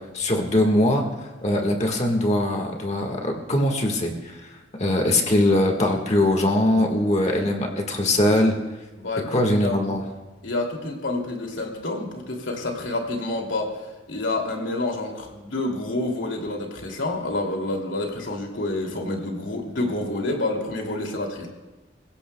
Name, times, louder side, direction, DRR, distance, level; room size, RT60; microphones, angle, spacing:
voice 1, 0.1-1.0 1.4-4.4 4.8-8.5 9.3-10.1, left 1 dB, 35° left, 2 dB, 1.6 m, -21 dB
voice 2, 9.0-9.8 10.4-13.7 14.1-21.5, left 2 dB, 85° left, 1 dB, 2.6 m, -28 dB
27.5 x 16.5 x 2.3 m, 1.2 s
head